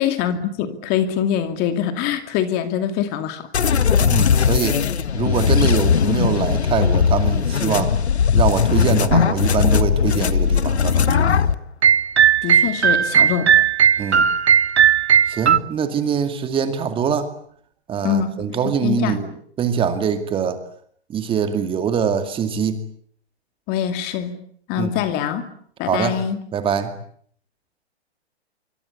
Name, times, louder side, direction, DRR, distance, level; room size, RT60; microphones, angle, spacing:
voice 1, 0.0-3.5 12.4-13.5 18.0-19.2 23.7-24.4 24.7-25.5 25.8-26.4, left 9 dB, 30° left, 9 dB, 2.6 m, -24 dB
sound 1, 3.5-11.5, left 7 dB, 80° left, 1.6 m, -18 dB
voice 2, 4.0-4.8 5.1-7.9 8.3-11.5 14.0-14.3 15.3-17.3 17.9-19.3 19.6-20.6 21.1-22.8 24.8-24.9 25.8-26.2 26.5-26.9, right 7 dB, 15° right, 9 dB, 2.3 m, -23 dB
sound 2, 9.0-15.7 16.0-16.3 16.7-16.9 17.4-17.6, right 9 dB, 50° right, 2.9 m, -38 dB
sound 3, 11.8-15.6, right 8 dB, 80° right, 1.5 m, -16 dB
26.5 x 24.0 x 8.5 m, 0.62 s
hypercardioid pair, 135°, 33 cm